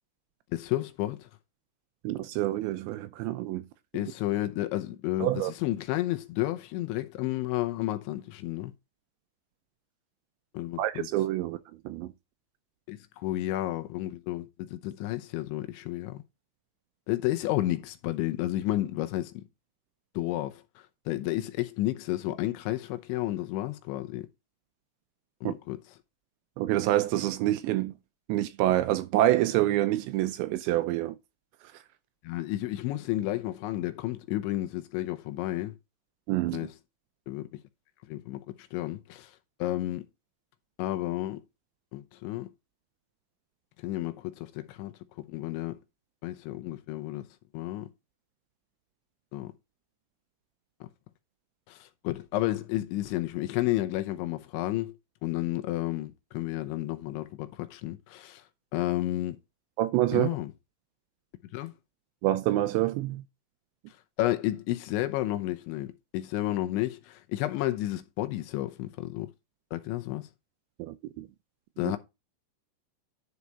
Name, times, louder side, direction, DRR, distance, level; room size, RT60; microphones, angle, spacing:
voice 1, 0.5-1.3 3.9-8.7 10.5-11.1 12.9-16.2 17.1-19.3 20.2-20.6 21.1-24.2 25.4-25.8 32.2-35.7 36.5-36.7 37.3-37.6 38.1-39.3 39.6-40.0 40.8-41.4 41.9-42.5 43.8-44.9 45.2-45.8 46.2-47.2 47.5-47.9 49.3-49.5 50.8-50.9 51.7-54.9 55.2-58.4 58.7-59.4 60.1-60.5 61.5-61.7 64.2-69.3 69.7-70.3 71.8-72.0, left 16 dB, 80° left, 3.0 m, -31 dB
voice 2, 2.0-3.6 5.2-5.5 10.8-11.6 11.9-12.1 25.4-25.5 26.6-27.9 28.3-31.2 36.3-36.7 59.8-60.3 62.2-63.2 70.8-71.3 71.9-72.0, right 15 dB, 80° right, 2.7 m, -27 dB
11.0 x 4.8 x 4.2 m
omnidirectional pair, 5.5 m